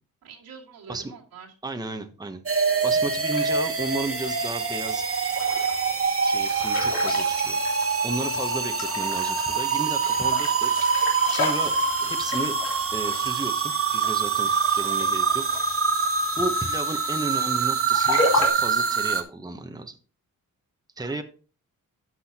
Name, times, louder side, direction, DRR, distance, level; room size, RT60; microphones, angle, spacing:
voice 1, 0.2-1.5 15.9-16.1 21.0-21.2, right 5 dB, 90° right, -2 dB, 2.5 m, -46 dB
voice 2, 1.6-2.4 2.8-5.4 6.1-7.6 8.0-10.7 11.3-12.6 12.9-15.5 16.4-20.0 21.0-21.2, right 2 dB, 10° right, 7 dB, 0.9 m, -33 dB
sound 1, 2.5-19.2, right 5 dB, 40° right, 1.3 m, -25 dB
sound 2, 2.8-16.2 16.5-18.5, left 3 dB, 90° left, 3.0 m, -33 dB
12.0 x 6.1 x 2.8 m, 0.36 s
cardioid pair, 90°, 35 cm